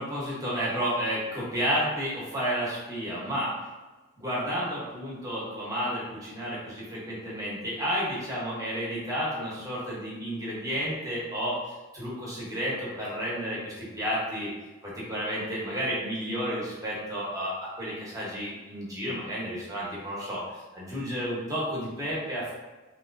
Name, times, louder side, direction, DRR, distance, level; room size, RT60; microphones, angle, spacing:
voice 1, 0.0-3.6 4.2-14.5 14.8-22.5, equal, 15° right, -7 dB, 0.9 m, -31 dB
3.0 x 3.0 x 2.5 m, 1.2 s
head